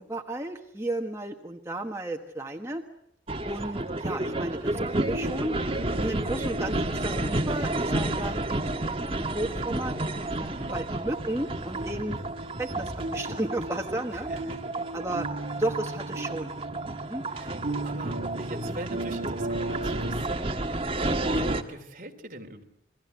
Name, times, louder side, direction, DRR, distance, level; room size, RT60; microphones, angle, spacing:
voice 1, 0.0-2.8 3.4-4.8 5.1-5.6 6.0-10.1 10.4-12.2 12.6-14.3 14.9-15.3 15.6-16.5 17.0-17.2, right 1 dB, 15° right, 2 dB, 1.4 m, -33 dB
sound 1, 3.3-21.6, right 2 dB, 30° right, 1.5 m, -31 dB
sound 2, 5.0-20.2, right 1 dB, 80° right, 2.5 m, -38 dB
voice 2, 10.5-10.8 14.1-14.7 17.3-17.6 17.8-22.6, right 1 dB, 45° right, 5 dB, 3.0 m, -43 dB
29.5 x 22.0 x 8.2 m, 0.75 s
head